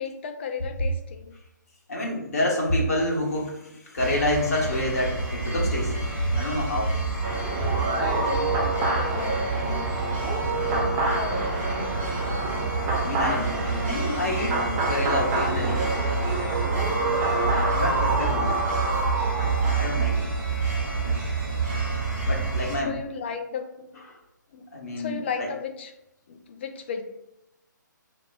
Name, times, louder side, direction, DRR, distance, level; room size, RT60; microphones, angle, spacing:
voice 1, 0.0-1.4 7.9-10.0 10.6-11.9 22.7-23.9 24.5-24.7 25.0-25.9 26.3-27.0, left 6 dB, 35° left, 5 dB, 0.4 m, -35 dB
voice 2, 1.9-7.0 13.0-13.6 13.8-15.9 16.4-16.6 17.4-18.5 19.8-20.3 21.0-21.2 22.3-22.9 24.7-25.5, left 1 dB, 50° left, -1 dB, 0.9 m, -28 dB
sound 1, 4.0-22.8, right 3 dB, 40° right, 1.4 m, -28 dB
sound 2, 7.2-20.1, right 2 dB, 15° right, 0.5 m, -28 dB
5.0 x 2.8 x 2.2 m, 0.87 s
figure-of-eight pair, 140°, 11 cm